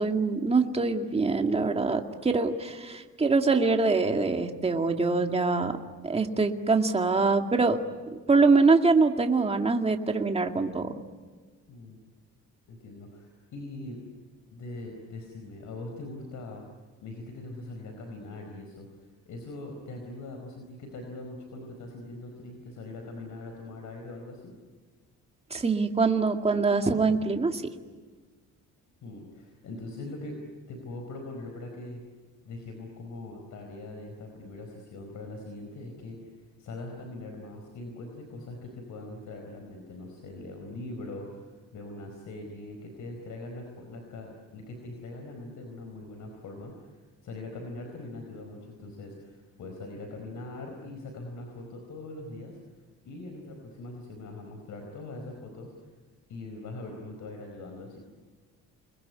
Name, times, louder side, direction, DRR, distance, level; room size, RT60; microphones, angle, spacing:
voice 1, 0.0-5.7 6.0-7.8 8.1-10.9 25.5-27.6, right 4 dB, 20° right, 4 dB, 2.2 m, -24 dB
voice 2, 11.7-12.0 12.7-14.0 14.5-16.6 17.0-24.5 29.0-30.4 30.7-32.0 32.4-36.2 36.6-52.6 53.0-55.9 56.3-58.0, left 2 dB, 70° left, 3 dB, 4.8 m, -42 dB
28.5 x 21.5 x 9.7 m, 1.4 s
cardioid pair, 120°, 31 cm